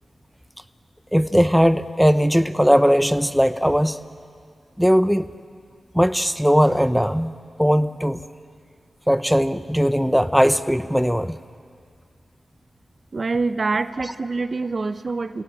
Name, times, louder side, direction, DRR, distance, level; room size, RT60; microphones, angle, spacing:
voice 1, 1.1-4.0 4.8-5.3 5.9-7.3 7.6-8.2 9.1-11.4, equal, ahead, 11 dB, 0.9 m, -18 dB
voice 2, 13.1-15.4, right 3 dB, 55° right, 12 dB, 0.7 m, -25 dB
29.0 x 17.0 x 7.4 m, 2.2 s
cardioid pair, 45°, 0 cm